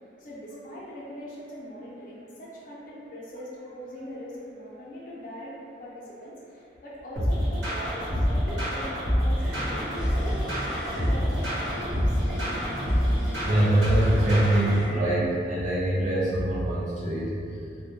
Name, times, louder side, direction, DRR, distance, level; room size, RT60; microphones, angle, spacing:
voice 1, 0.2-10.6 10.9-12.2, equal, 45° left, -5 dB, 0.4 m, -41 dB
sound 1, 7.2-14.8, equal, 80° right, 1.0 m, -26 dB
sound 2, 9.4-14.9, equal, ahead, 0.6 m, -37 dB
voice 2, 13.4-17.3, right 1 dB, 45° right, -8 dB, 0.5 m, -24 dB
2.1 x 2.0 x 2.9 m, 2.4 s
head